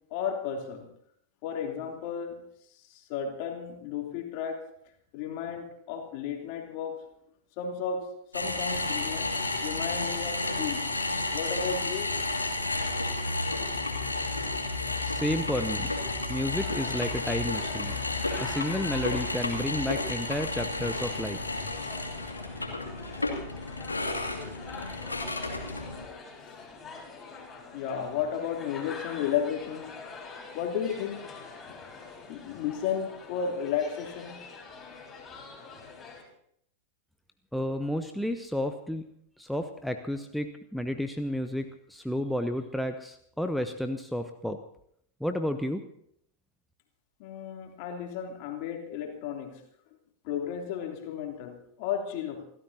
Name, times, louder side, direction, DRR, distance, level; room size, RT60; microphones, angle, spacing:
voice 1, 0.1-0.9 1.4-2.4 2.8-4.7 5.1-7.0 7.6-10.9 11.3-12.1 26.6-26.7 27.7-29.9 30.5-31.8 32.3-34.5 47.2-49.6 50.2-52.4, left 7 dB, 45° left, 2 dB, 3.0 m, -33 dB
sound 1, 8.3-26.1, left 2 dB, 80° left, 2.2 m, -32 dB
voice 2, 15.1-15.9 16.3-18.0 18.4-21.4 37.5-39.1 39.4-44.6 45.2-45.8, equal, ahead, 6 dB, 0.9 m, -31 dB
sound 2, 16.5-36.2, left 4 dB, 20° left, 4.7 m, -45 dB
28.5 x 13.5 x 2.8 m, 0.70 s
figure-of-eight pair, 90°, 0 cm